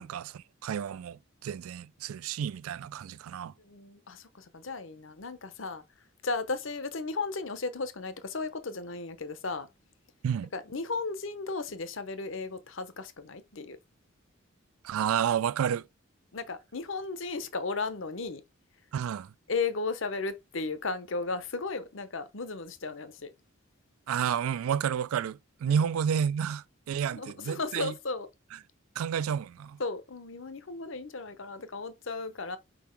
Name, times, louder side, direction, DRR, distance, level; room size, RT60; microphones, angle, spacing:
voice 1, 0.0-3.5 10.2-10.5 14.8-15.9 18.9-19.3 24.1-27.9 29.0-29.8, right 8 dB, 85° right, 0.3 m, -30 dB
voice 2, 3.6-5.8 6.2-9.7 10.5-13.8 16.3-18.4 19.5-23.3 25.7-25.8 27.1-28.3 29.8-32.6, left 3 dB, 65° left, 0.9 m, -35 dB
5.3 x 4.7 x 4.4 m
head